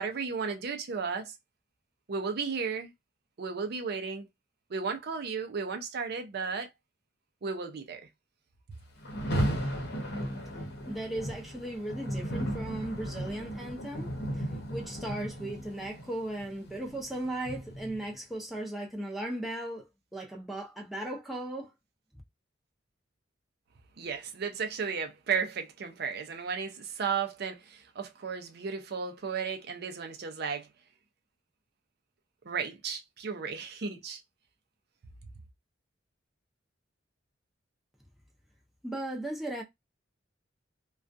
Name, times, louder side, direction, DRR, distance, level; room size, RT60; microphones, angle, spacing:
voice 1, 0.0-1.4 2.1-2.9 3.4-4.3 4.7-6.7 7.4-8.1 24.0-30.7 32.5-34.2, right 5 dB, 55° right, 0.5 m, -34 dB
Rain, 9.0-18.1, equal, 60° left, 0.8 m, -35 dB
voice 2, 10.9-21.7 38.8-39.6, right 1 dB, ahead, 0.6 m, -37 dB
2.4 x 2.2 x 2.5 m
head